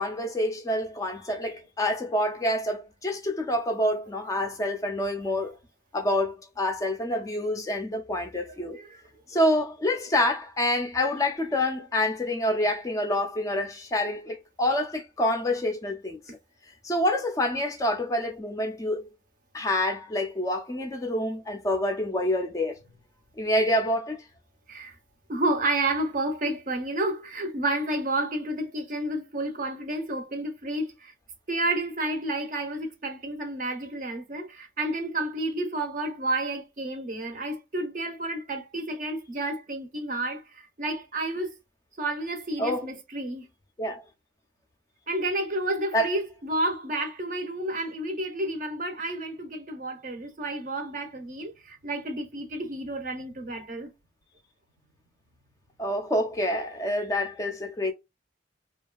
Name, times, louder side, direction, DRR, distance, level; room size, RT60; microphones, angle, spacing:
voice 1, 0.0-5.5 5.9-8.8 9.3-16.2 16.8-19.0 19.5-22.8 23.4-24.2 42.6-42.9 43.8-44.0 45.9-46.1 55.8-57.9, left 1 dB, 20° left, 0.3 m, -27 dB
voice 2, 8.5-9.0 24.7-25.0 25.3-31.1 31.5-41.5 42.0-43.5 45.1-53.9, right 1 dB, 45° right, 0.6 m, -30 dB
2.7 x 2.3 x 2.2 m
head